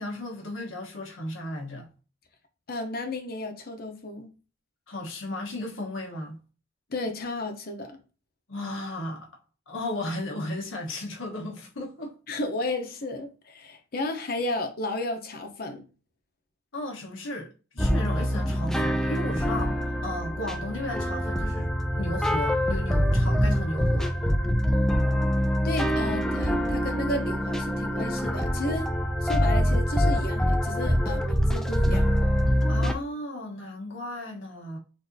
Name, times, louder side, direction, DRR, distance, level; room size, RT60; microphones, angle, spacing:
voice 1, 0.0-1.9 4.9-6.4 8.5-9.3 9.7-12.2 16.7-24.1 32.7-34.8, left 1 dB, 90° left, 1.1 m, -35 dB
voice 2, 2.7-4.3 6.9-8.0 12.3-15.8 25.6-28.9 29.2-32.1, left 2 dB, 50° left, 0.8 m, -33 dB
sound 1, 17.8-32.9, equal, 5° left, 0.3 m, -25 dB
6.4 x 2.7 x 2.7 m
head